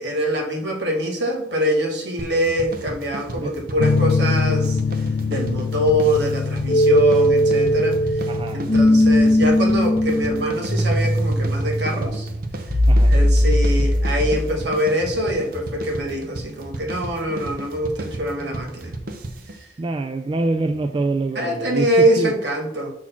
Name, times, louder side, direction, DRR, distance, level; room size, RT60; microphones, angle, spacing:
voice 1, 0.0-4.8 5.2-8.0 8.5-12.3 13.0-18.9 21.3-22.9, equal, 70° right, 0 dB, 1.5 m, -23 dB
sound 1, 2.2-19.6, right 1 dB, 55° right, 0.7 m, -34 dB
sound 2, 3.8-11.4, left 5 dB, 65° left, 0.3 m, -25 dB
sound 3, 6.7-14.6, equal, 20° left, 0.6 m, -18 dB
voice 2, 8.3-8.6 12.9-13.1 19.8-22.3, right 2 dB, 30° right, 7 dB, 0.3 m, -25 dB
6.1 x 4.1 x 5.8 m, 0.82 s
head